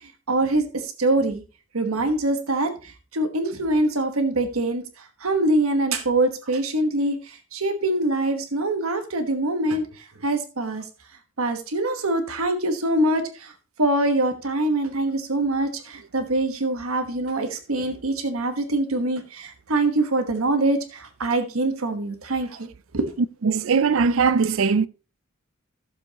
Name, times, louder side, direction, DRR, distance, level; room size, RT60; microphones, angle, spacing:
voice 1, 0.3-1.4 1.7-4.8 5.2-9.8 10.2-10.8 11.4-13.5 13.8-22.7 22.9-23.1, right 2 dB, 85° right, 1.3 m, -24 dB
voice 2, 23.4-24.9, right 5 dB, 70° right, 0.4 m, -20 dB
14.5 x 7.2 x 2.9 m
head